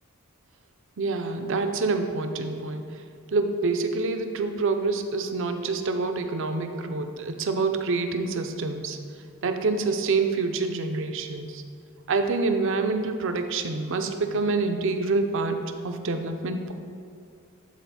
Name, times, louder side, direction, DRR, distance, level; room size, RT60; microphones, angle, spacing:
voice 1, 1.0-2.9 3.3-9.0 9.4-11.6 12.1-16.7, right 3 dB, 60° right, 6 dB, 0.6 m, -27 dB
11.5 x 4.1 x 4.2 m, 2.3 s
head